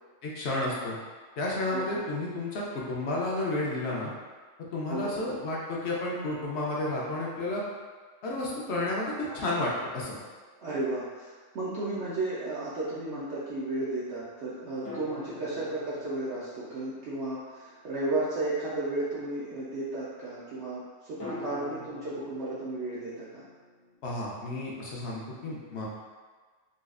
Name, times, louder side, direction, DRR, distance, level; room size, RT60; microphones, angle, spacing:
voice 1, 0.2-0.9 1.4-4.1 4.7-7.6 8.2-10.1 24.0-25.9, left 2 dB, 60° left, -4 dB, 0.9 m, -31 dB
voice 2, 1.7-2.0 4.9-5.1 10.6-23.4, right 2 dB, 65° right, -10 dB, 0.9 m, -33 dB
sound 1, 9.3-10.8 14.9-18.5 21.2-24.0, left 3 dB, 80° left, 1.3 m, -46 dB
4.0 x 2.4 x 2.4 m, 1.4 s
omnidirectional pair, 1.3 m